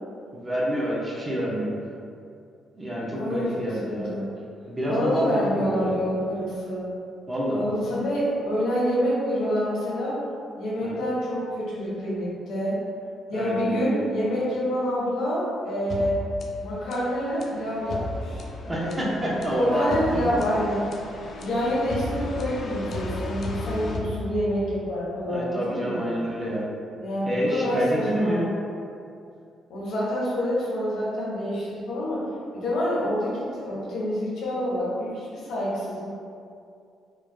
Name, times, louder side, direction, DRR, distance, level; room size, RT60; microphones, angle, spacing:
voice 1, 0.3-1.7 2.7-4.2 4.7-5.2 5.6-5.9 7.3-7.6 10.8-11.0 13.3-14.0 18.7-20.3 25.3-26.7 27.2-28.5, equal, 20° right, -5 dB, 0.9 m, -27 dB
voice 2, 3.1-3.5 3.9-4.2 4.9-6.9 7.5-10.2 10.6-12.8 13.3-16.2 16.6-18.4 18.7-18.9 19.6-20.8 21.4-26.0 27.0-28.5 29.7-32.3 32.5-36.1, equal, 80° left, -8 dB, 1.4 m, -27 dB
sound 1, 15.9-24.8, left 2 dB, 55° left, 0.4 m, -35 dB
4.7 x 2.8 x 2.3 m, 2.4 s
cardioid pair, 90°, 0 cm